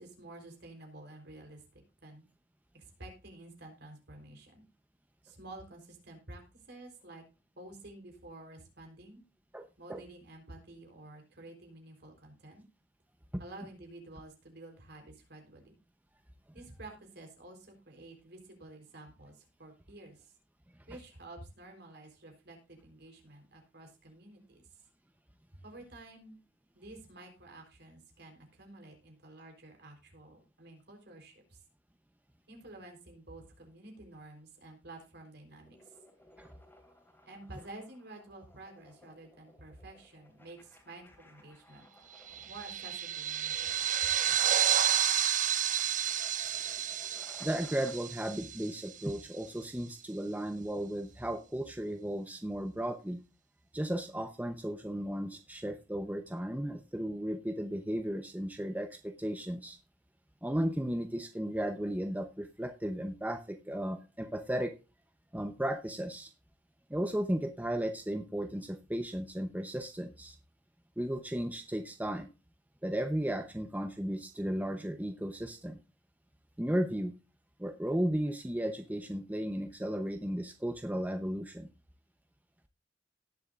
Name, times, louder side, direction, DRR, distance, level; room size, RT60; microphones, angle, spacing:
voice 1, 0.0-2.2 2.7-4.6 5.2-7.2 7.6-9.2 9.8-12.6 13.4-15.8 16.5-20.3 20.9-24.8 25.5-26.4 26.7-31.6 32.5-36.0 37.3-41.9 42.4-43.9, right 2 dB, 60° right, 3 dB, 3.8 m, -51 dB
sound 1, 35.6-47.9, left 1 dB, 10° left, 2.8 m, -59 dB
sound 2, 42.3-49.1, right 10 dB, 45° right, 0.7 m, -31 dB
voice 2, 47.4-53.2 53.7-59.8 60.4-64.7 65.3-66.3 66.9-70.4 71.0-72.3 72.8-75.8 76.6-77.1 77.6-81.7, right 1 dB, 10° right, 7 dB, 0.8 m, -35 dB
18.0 x 7.1 x 2.5 m, 0.30 s
head